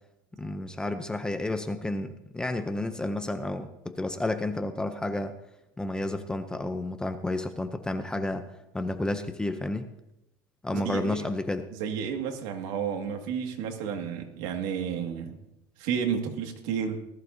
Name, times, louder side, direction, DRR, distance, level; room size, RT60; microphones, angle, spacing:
voice 1, 0.4-5.4 5.8-8.5 8.7-9.9 10.6-11.7, left 2 dB, 5° left, 8 dB, 0.5 m, -31 dB
voice 2, 10.7-11.2 11.8-15.4 15.8-17.0, right 7 dB, 65° right, 4 dB, 2.0 m, -31 dB
19.0 x 14.5 x 2.7 m, 0.88 s
cardioid pair, 170°, 12 cm